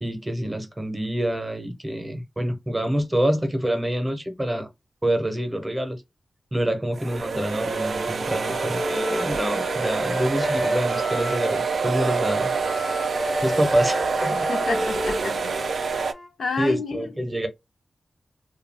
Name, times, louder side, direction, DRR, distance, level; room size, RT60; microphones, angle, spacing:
voice 1, 0.0-4.7 5.0-6.0 6.5-12.5 13.4-14.5 16.6-17.5, right 1 dB, 15° right, 0.7 m, -26 dB
sound 1, 6.9-16.1, right 4 dB, 70° right, 0.3 m, -26 dB
Wind instrument woodwind instrument, 7.6-11.7 12.0-16.3, left 1 dB, 25° left, 0.5 m, -33 dB
voice 2, 14.5-16.1 16.4-17.1, left 4 dB, 80° left, 0.5 m, -30 dB
2.3 x 2.2 x 3.3 m
wide cardioid pair, 100°, 0 cm